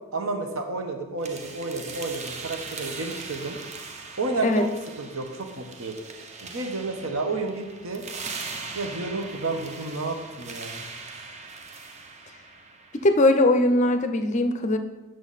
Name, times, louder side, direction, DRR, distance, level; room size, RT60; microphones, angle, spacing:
voice 1, 0.1-3.6 4.2-6.0 6.4-8.0 8.7-10.8, right 3 dB, 70° right, 4 dB, 1.0 m, -31 dB
sound 1, 1.2-13.2, right 4 dB, 30° right, 0.6 m, -40 dB
voice 2, 12.9-14.8, left 1 dB, 30° left, 7 dB, 0.5 m, -20 dB
8.0 x 6.3 x 4.1 m, 1.2 s
head